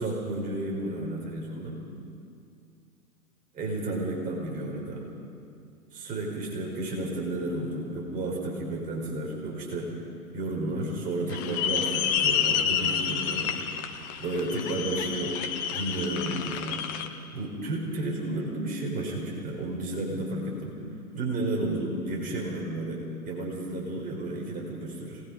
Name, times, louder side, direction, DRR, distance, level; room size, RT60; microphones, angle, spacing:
voice 1, 0.0-1.8 3.5-5.1 5.9-9.9 10.3-13.5 14.2-15.4 15.7-20.8 21.1-25.2, right 1 dB, 20° right, -2 dB, 4.4 m, -32 dB
sound 1, 11.3-17.1, left 8 dB, 15° left, 0.5 m, -29 dB
26.5 x 20.0 x 5.3 m, 2.4 s
hypercardioid pair, 135°, 46 cm